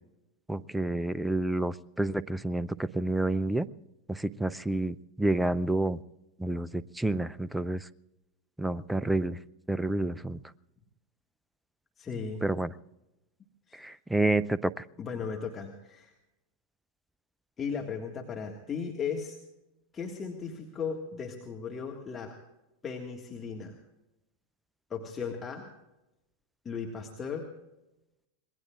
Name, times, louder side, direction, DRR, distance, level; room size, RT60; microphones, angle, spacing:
voice 1, 0.5-3.7 4.1-6.0 6.4-7.8 8.6-9.4 9.7-10.4 12.4-12.7 13.8-14.8, right 2 dB, 5° right, 19 dB, 0.5 m, -29 dB
voice 2, 12.0-12.4 13.7-13.8 15.0-16.1 17.6-19.4 19.9-22.3 22.8-23.8 24.9-25.7 26.7-27.5, left 6 dB, 20° left, 1 dB, 1.8 m, -36 dB
26.5 x 20.5 x 2.5 m, 0.94 s
figure-of-eight pair, 90°, 0 cm